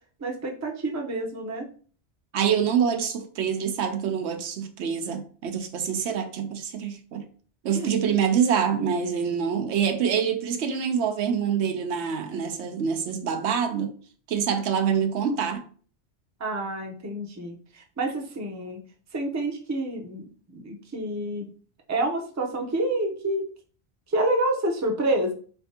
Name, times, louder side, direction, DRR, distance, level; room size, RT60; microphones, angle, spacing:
voice 1, 0.2-1.7 7.7-7.9 16.4-18.8 19.1-21.5 21.9-23.5 24.1-25.3, right 1 dB, 20° right, 0.5 m, -28 dB
voice 2, 2.3-7.2 7.6-13.9 14.3-15.6, right 7 dB, 80° right, 0.9 m, -26 dB
4.3 x 3.3 x 2.7 m
omnidirectional pair, 1.1 m